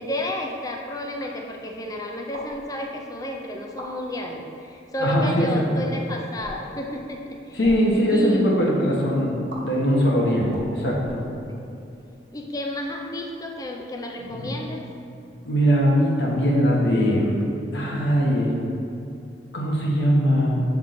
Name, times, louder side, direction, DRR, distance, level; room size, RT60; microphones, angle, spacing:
voice 1, 0.0-7.6 8.1-8.6 11.5-11.9 12.3-14.9, left 1 dB, 20° left, 2 dB, 0.5 m, -31 dB
sound 1, 2.3-2.6 3.6-3.9 4.9-5.2 6.3-6.7 7.5-7.8 9.5-9.6 10.5-11.6, right 1 dB, 70° right, 1.0 m, -40 dB
voice 2, 5.0-5.5 7.5-11.2 14.3-14.5 15.4-17.4 17.7-18.5 19.5-20.6, equal, 75° left, -3 dB, 1.2 m, -21 dB
7.5 x 3.6 x 3.8 m, 2.6 s
head